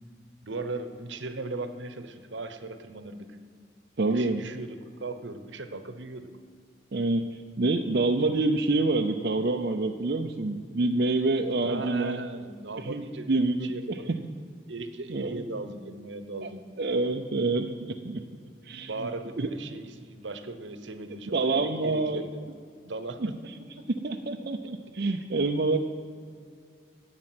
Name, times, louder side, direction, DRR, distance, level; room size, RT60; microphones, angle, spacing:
voice 1, 0.4-3.4 4.1-6.3 11.6-14.2 14.7-16.7 18.8-22.3 22.8-23.9 24.1-24.2, right 3 dB, 80° right, 9 dB, 1.0 m, -38 dB
voice 2, 4.0-4.4 6.9-12.2 12.8-14.2 15.1-15.4 16.4-16.5 16.8-18.2 18.6-18.9 19.4-19.5 21.3-22.2 24.0-25.8, right 2 dB, 55° right, 3 dB, 0.6 m, -27 dB
12.0 x 8.5 x 7.7 m, 2.2 s
head